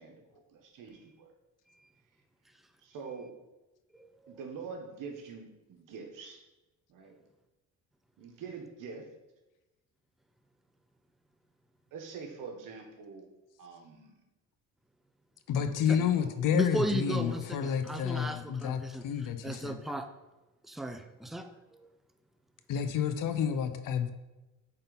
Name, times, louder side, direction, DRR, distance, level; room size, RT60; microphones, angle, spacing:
voice 1, 0.0-1.3 2.8-3.3 4.3-6.4 6.9-7.2 8.2-9.0 11.9-13.3 13.6-14.2 15.9-16.4, right 5 dB, 80° right, 3 dB, 1.2 m, -45 dB
voice 2, 3.9-4.3 16.5-19.0 19.4-20.1 20.7-21.5, right 1 dB, ahead, 7 dB, 0.5 m, -35 dB
voice 3, 15.5-19.8 22.7-24.1, left 8 dB, 80° left, 9 dB, 0.7 m, -30 dB
7.9 x 3.8 x 4.0 m, 1.0 s
cardioid pair, 95°, 32 cm